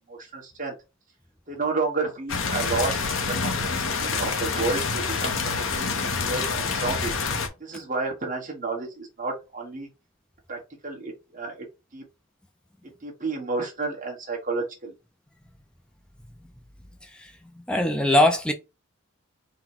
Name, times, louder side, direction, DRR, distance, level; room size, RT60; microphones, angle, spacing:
voice 1, 0.1-0.7 1.5-5.3 5.7-5.9 6.2-7.1 7.6-9.9 10.5-11.7 11.9-12.0 13.0-14.9, right 3 dB, 35° right, 1.4 m, -31 dB
sound 1, 2.3-7.5, left 4 dB, 65° left, 0.8 m, -27 dB
voice 2, 17.7-18.5, left 1 dB, 5° left, 0.4 m, -20 dB
4.0 x 2.2 x 4.4 m
head